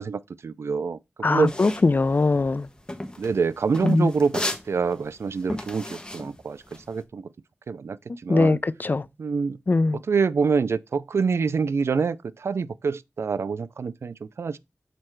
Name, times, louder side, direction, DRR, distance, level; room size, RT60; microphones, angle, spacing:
voice 1, 0.0-1.5 3.2-7.3 7.7-8.6 9.2-9.6 9.9-14.6, right 5 dB, 90° right, 0.4 m, -26 dB
voice 2, 1.2-2.7 3.8-4.1 8.3-9.0 9.7-10.0, left 3 dB, 45° left, 0.4 m, -21 dB
sound 1, 1.4-7.0, left 1 dB, 20° left, 1.2 m, -34 dB
6.7 x 4.3 x 4.5 m
wide cardioid pair, 70°, 4 cm